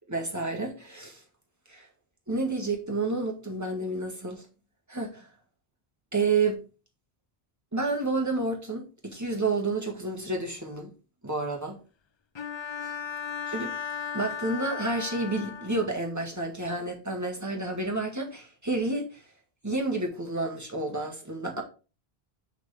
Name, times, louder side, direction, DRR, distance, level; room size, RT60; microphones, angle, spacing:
voice 1, 0.1-1.2 1.7-1.9 2.3-4.4 4.9-5.3 6.1-6.6 7.7-10.9 11.2-11.8 12.8-12.9 13.5-13.7 14.1-19.2 19.6-21.6, right 3 dB, 15° right, 1.7 m, -30 dB
Bowed string instrument, 12.4-16.1, left 7 dB, 50° left, 0.3 m, -36 dB
6.5 x 6.2 x 3.5 m
omnidirectional pair, 1.0 m